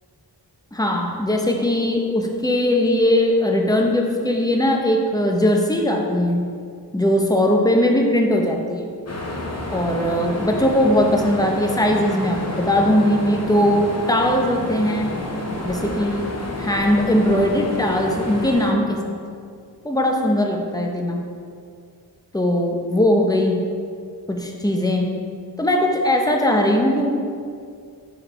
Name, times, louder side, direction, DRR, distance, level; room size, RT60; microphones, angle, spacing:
voice 1, 0.7-6.5 6.9-8.9 9.7-15.1 15.6-16.3 16.6-19.1 19.8-21.3 22.3-23.6 24.3-25.2 25.6-27.1, left 1 dB, 10° left, 1 dB, 0.7 m, -19 dB
sound 1, 9.1-18.7, left 2 dB, 40° left, 0.9 m, -29 dB
5.2 x 4.8 x 4.2 m, 2.2 s
wide cardioid pair, 50°, 41 cm